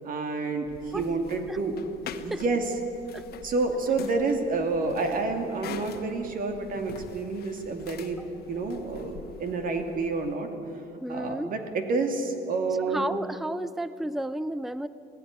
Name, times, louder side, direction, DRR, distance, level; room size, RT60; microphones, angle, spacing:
voice 1, 0.0-1.8 2.2-2.6 3.4-8.2 8.5-10.5 11.1-13.1, right 3 dB, 55° right, 5 dB, 2.6 m, -29 dB
sound 1, 0.6-10.4, left 8 dB, 65° left, 1.3 m, -45 dB
voice 2, 11.0-11.5 12.8-14.9, right 1 dB, ahead, 15 dB, 0.5 m, -32 dB
18.5 x 15.0 x 9.8 m, 2.8 s
cardioid pair, 110°, 17 cm